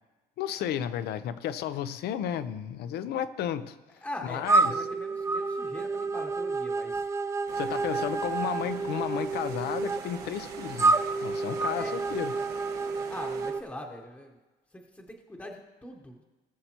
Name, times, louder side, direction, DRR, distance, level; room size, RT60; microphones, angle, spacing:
voice 1, 0.4-3.8 4.2-4.7 7.6-11.0 11.2-12.3, left 10 dB, 70° left, 0.6 m, -33 dB
voice 2, 4.0-7.1 7.9-8.2 11.7-12.1 13.1-14.4 14.7-16.2, left 1 dB, 10° left, 1.0 m, -42 dB
sound 1, 4.4-13.6, right 3 dB, 15° right, 0.4 m, -29 dB
sound 2, 7.5-13.5, right 6 dB, 70° right, 1.2 m, -45 dB
19.0 x 6.7 x 2.9 m
cardioid pair, 110°, 17 cm